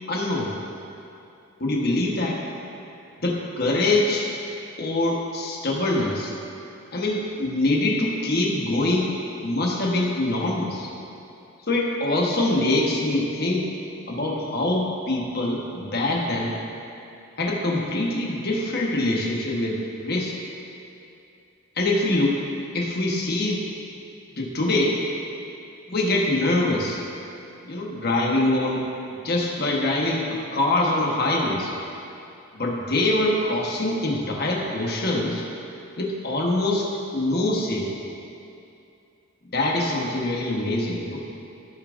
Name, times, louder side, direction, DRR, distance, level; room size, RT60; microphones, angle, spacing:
voice 1, 0.1-0.5 1.6-2.4 3.2-4.3 4.8-6.3 6.9-9.1 9.4-10.9 11.7-13.7 14.1-16.5 17.4-20.3 21.7-22.4 22.7-23.6 24.4-25.0 25.9-27.0 27.6-31.7 32.5-35.4 36.0-38.0 39.5-41.2, left 2 dB, 45° left, -2 dB, 1.3 m, -24 dB
15.5 x 6.9 x 2.6 m, 2.7 s
head